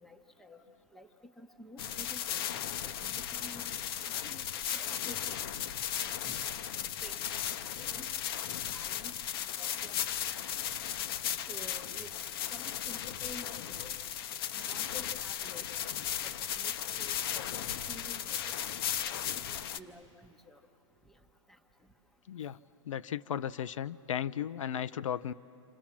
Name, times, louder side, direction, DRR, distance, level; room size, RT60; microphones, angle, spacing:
voice 1, 0.0-0.6 0.9-1.1 1.4-2.5 2.8-3.6 4.0-4.4 4.7-5.4 7.0-7.2 7.6-8.1 8.7-9.1 9.5-9.9 10.3-10.4 11.5-12.1 12.5-13.9 14.6-15.7 16.2-16.7 17.0-18.5 19.3-20.1 20.5-20.6, left 1 dB, ahead, 5 dB, 0.9 m, -50 dB
sound 1, 1.8-19.8, left 10 dB, 50° left, 0.8 m, -36 dB
voice 2, 22.3-22.6 22.9-25.3, left 9 dB, 85° left, 14 dB, 0.6 m, -35 dB
27.5 x 27.0 x 7.3 m, 2.8 s
hypercardioid pair, 150°, 16 cm